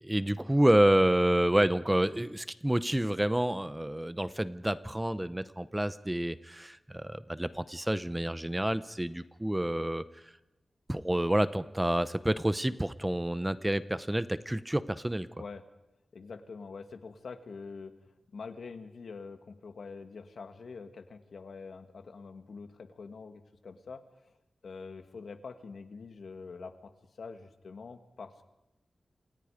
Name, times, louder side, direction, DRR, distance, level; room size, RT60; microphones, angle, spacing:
voice 1, 0.0-10.2 10.9-15.3, right 1 dB, 10° right, 14 dB, 0.8 m, -28 dB
voice 2, 16.1-18.0 18.3-24.4 24.6-28.4, left 4 dB, 75° left, 8 dB, 2.2 m, -45 dB
28.5 x 27.0 x 5.1 m, 0.93 s
wide cardioid pair, 135°, 0 cm